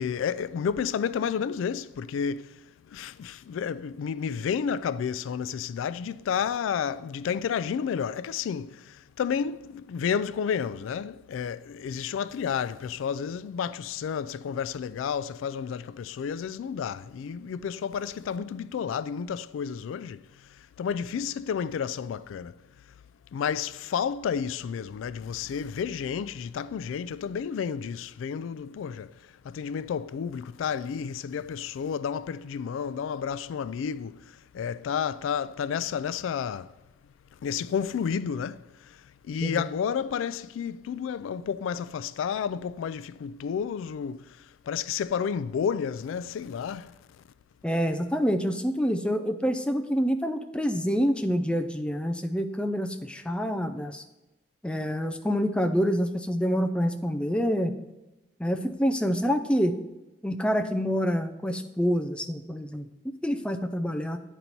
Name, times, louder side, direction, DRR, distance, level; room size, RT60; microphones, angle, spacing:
voice 1, 0.0-20.2 20.5-22.5 23.3-29.1 29.4-34.2 34.5-36.7 37.4-39.0 39.3-44.3 44.7-47.0, left 7 dB, 85° left, 0.3 m, -31 dB
voice 2, 47.6-54.0 54.6-57.7 58.4-59.7 60.2-62.9 63.2-64.2, equal, 5° left, 0.4 m, -27 dB
10.0 x 4.1 x 4.4 m
head